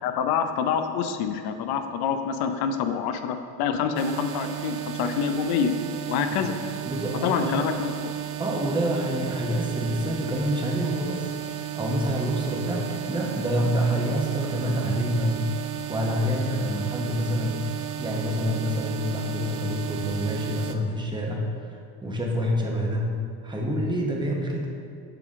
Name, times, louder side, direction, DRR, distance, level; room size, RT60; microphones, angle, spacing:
voice 1, 0.0-5.7 6.1-6.6 7.2-8.2, left 7 dB, 55° left, 8 dB, 0.6 m, -26 dB
sound 1, 4.0-20.8, right 10 dB, 80° right, 0.6 m, -34 dB
voice 2, 6.8-7.7 8.4-11.3 11.7-15.4 15.9-17.6 18.0-23.2 23.4-24.7, equal, 10° right, -1 dB, 0.9 m, -27 dB
7.6 x 3.5 x 3.6 m, 2.3 s
supercardioid pair, 95°, 45 cm